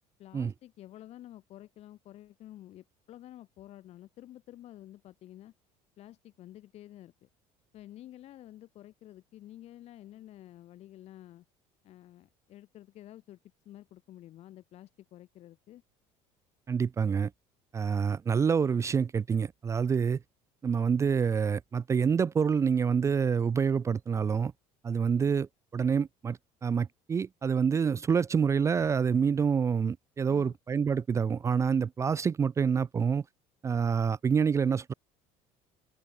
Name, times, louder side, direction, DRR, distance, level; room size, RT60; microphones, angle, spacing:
voice 1, 0.2-5.5 6.0-7.3 7.7-11.4 11.8-13.4 13.6-15.8 30.2-30.6, left 13 dB, 50° left, 3.4 m, -50 dB
voice 2, 16.7-17.3 17.7-20.2 20.6-24.5 24.8-25.5 25.7-33.2 33.6-34.9, right 6 dB, 20° right, 0.5 m, -27 dB
open air
cardioid pair, 150°, 14 cm